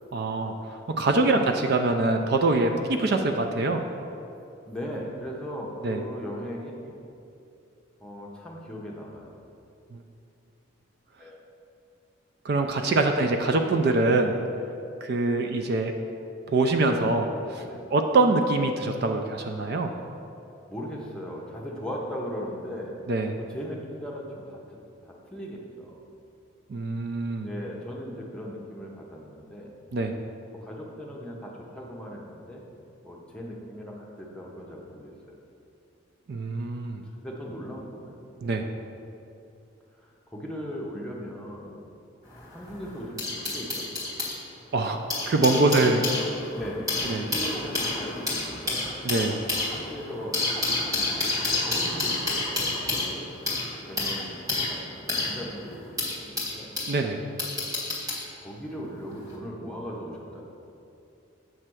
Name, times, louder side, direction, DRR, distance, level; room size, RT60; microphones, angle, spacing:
voice 1, 0.1-3.8 5.8-6.0 9.9-10.0 12.4-14.4 15.0-15.9 16.5-17.6 17.9-19.9 23.1-23.3 26.7-27.5 29.9-30.1 36.3-37.0 38.4-38.7 44.7-45.0 45.3-46.0 47.1-47.2 49.0-49.4 56.9-57.2, right 2 dB, 55° right, 5 dB, 0.4 m, -24 dB
voice 2, 1.0-1.4 2.6-2.8 4.6-7.0 8.0-9.4 11.2-11.4 17.6-17.9 20.7-22.9 23.4-24.6 25.0-26.1 27.4-29.7 30.5-32.6 33.0-35.3 37.2-38.2 40.0-41.8 42.5-44.1 45.5-46.1 46.5-48.9 49.7-53.3 53.9-56.8 58.4-60.4, equal, 5° left, -3 dB, 0.7 m, -38 dB
sound 1, 42.3-44.4 44.9-57.0 57.4-58.3 59.2-59.3, left 2 dB, 15° right, 1.6 m, -29 dB
7.5 x 3.3 x 6.1 m, 2.7 s
head